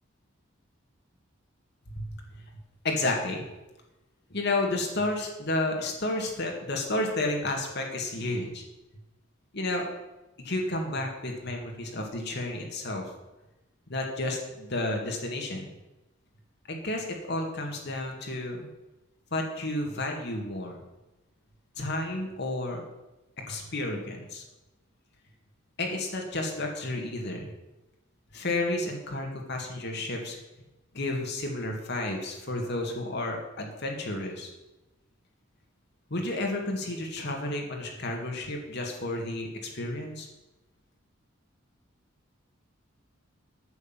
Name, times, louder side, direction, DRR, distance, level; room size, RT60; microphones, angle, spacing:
voice 1, 2.8-3.5 4.3-8.6 9.5-9.8 10.4-13.1 13.9-15.7 16.7-18.7 19.3-20.8 21.8-22.8 23.5-24.4 25.8-27.5 28.3-30.4 30.9-34.5 36.1-40.3, left 2 dB, 50° left, 1 dB, 2.0 m, -31 dB
9.5 x 8.1 x 7.3 m, 1.0 s
head